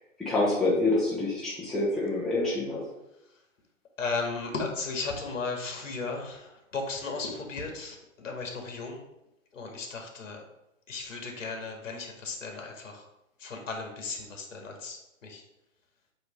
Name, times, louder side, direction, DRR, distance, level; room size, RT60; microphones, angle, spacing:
voice 1, 0.2-2.9, left 2 dB, ahead, -8 dB, 0.9 m, -27 dB
voice 2, 4.0-9.0 9.5-10.4 10.9-13.0 13.4-15.4, left 4 dB, 65° left, 2 dB, 1.9 m, -35 dB
7.9 x 3.1 x 5.3 m, 0.90 s
hypercardioid pair, 150°, 40 cm